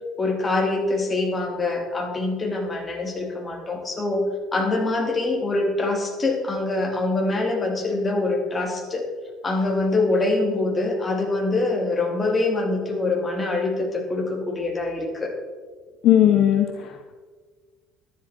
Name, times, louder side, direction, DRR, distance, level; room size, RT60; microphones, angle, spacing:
voice 1, 0.2-9.0 9.4-15.3, left 2 dB, 25° left, 1 dB, 3.1 m, -24 dB
voice 2, 16.0-17.2, left 11 dB, 55° left, 6 dB, 0.7 m, -18 dB
12.0 x 11.0 x 4.4 m, 1.5 s
figure-of-eight pair, 55°, 0 cm